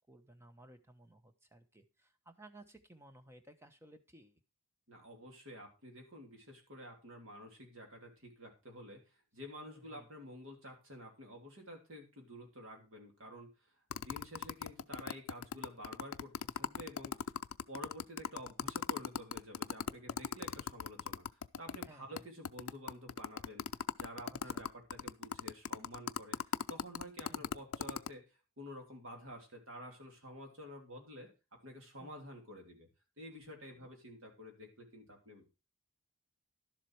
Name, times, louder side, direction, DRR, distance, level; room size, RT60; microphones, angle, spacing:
voice 1, 0.1-4.4 9.7-10.1 21.9-22.2 24.3-24.7 27.3-27.5 32.0-32.1 33.7-33.9, right 1 dB, 10° right, 8 dB, 1.0 m, -58 dB
voice 2, 4.9-17.3 17.7-23.7 23.9-31.3 31.6-32.9 33.2-35.5, equal, 60° right, 3 dB, 3.2 m, -50 dB
sound 1, 13.9-21.9 22.2-22.3 22.4-28.1, left 7 dB, 65° left, 0.4 m, -38 dB
11.5 x 7.4 x 4.7 m, 0.29 s
head